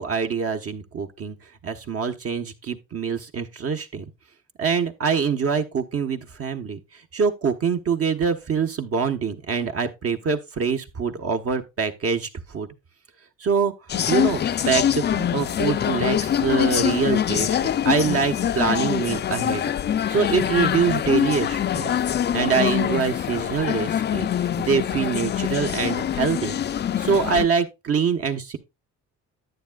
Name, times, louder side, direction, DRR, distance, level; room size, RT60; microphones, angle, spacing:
voice 1, 0.0-1.4 1.6-4.0 4.6-12.7 13.4-14.4 14.7-17.6 17.8-19.6 20.1-22.0 22.3-26.6 27.0-28.6, right 6 dB, 50° right, 1.2 m, -24 dB
sound 1, 13.9-27.5, left 10 dB, 35° left, 0.4 m, -24 dB
10.5 x 9.1 x 2.4 m
cardioid pair, 90°, 30 cm